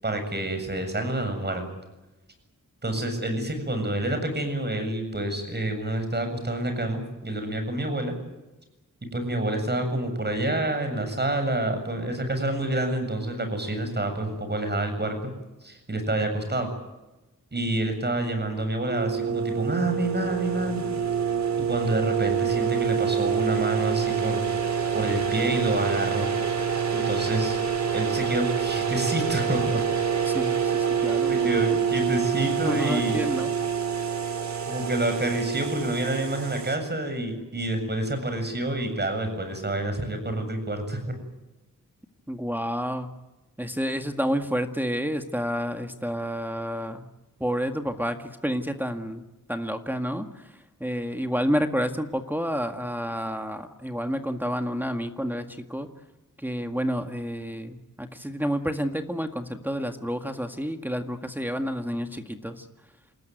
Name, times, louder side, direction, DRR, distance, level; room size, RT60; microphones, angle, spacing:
voice 1, 0.0-1.7 2.8-8.1 9.1-15.2 15.6-16.7 17.5-20.8 21.7-24.5 24.9-26.3 26.9-27.6 27.9-29.8 31.3-33.2 34.7-41.1, right 1 dB, 30° right, 7 dB, 7.5 m, -28 dB
sound 1, 18.9-36.8, right 7 dB, 60° right, 3.8 m, -27 dB
sound 2, 24.2-38.9 39.3-39.4, right 2 dB, 80° right, 4.5 m, -46 dB
voice 2, 30.3-31.8 32.6-33.5 42.3-43.1 43.6-47.0 47.4-49.2 49.5-50.5 50.8-55.9 56.4-62.7, equal, 5° right, 5 dB, 1.9 m, -29 dB
28.0 x 19.5 x 9.4 m, 1.0 s
wide cardioid pair, 85°, 31 cm